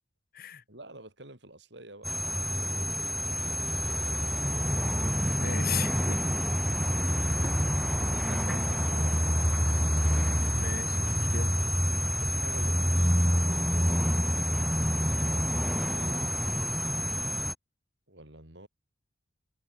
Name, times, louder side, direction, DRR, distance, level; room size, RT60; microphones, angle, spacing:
voice 1, 0.7-2.8 3.8-4.7 7.8-9.4 12.2-13.9 15.7-16.3 18.1-18.7, right 1 dB, 65° right, 7.3 m, -49 dB
sound 1, 2.0-17.5, equal, ahead, 0.8 m, -27 dB
voice 2, 5.4-6.2 7.4-7.8 10.5-11.6 14.9-15.1, left 7 dB, 50° left, 1.0 m, -37 dB
sound 2, 6.6-12.1, equal, 15° left, 5.3 m, -53 dB
head